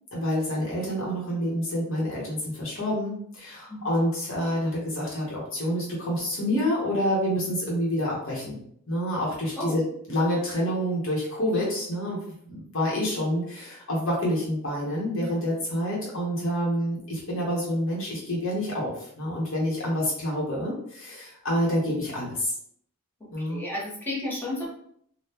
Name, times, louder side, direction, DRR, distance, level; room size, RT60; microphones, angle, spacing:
voice 1, 0.1-8.6 8.9-9.8 10.1-12.2 12.4-22.6 23.3-23.6, equal, 60° left, -5 dB, 1.0 m, -28 dB
voice 2, 23.4-24.7, left 1 dB, 10° left, -5 dB, 0.9 m, -32 dB
3.6 x 2.2 x 2.8 m, 0.66 s
head